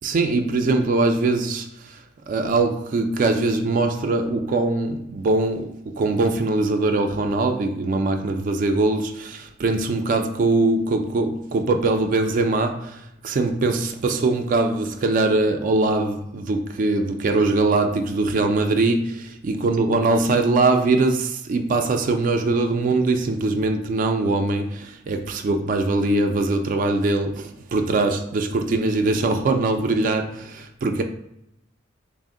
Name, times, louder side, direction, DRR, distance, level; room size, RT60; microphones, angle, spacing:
voice 1, 0.0-31.0, right 2 dB, 40° right, 0.3 m, -22 dB
4.2 x 2.0 x 3.6 m
head